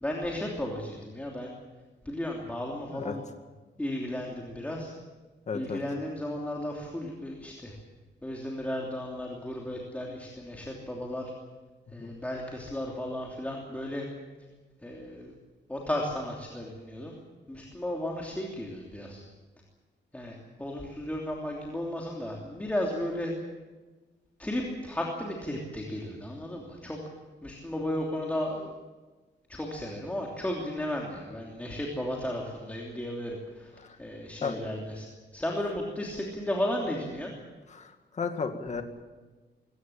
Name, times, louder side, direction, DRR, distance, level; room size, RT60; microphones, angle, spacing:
voice 1, 0.0-1.5 2.0-3.2 3.8-4.9 5.5-7.8 8.2-11.3 11.9-14.1 14.8-15.3 15.7-17.2 17.5-19.2 20.1-23.3 24.4-27.0 27.4-28.7 29.5-33.7 34.0-35.1 35.3-37.3, left 1 dB, 10° left, -1 dB, 3.0 m, -34 dB
voice 2, 5.5-5.8 12.0-12.1 33.8-34.0 34.4-34.6 37.7-38.8, left 5 dB, 40° left, 6 dB, 2.1 m, -34 dB
22.5 x 17.5 x 8.7 m, 1.3 s
wide cardioid pair, 150°, 19 cm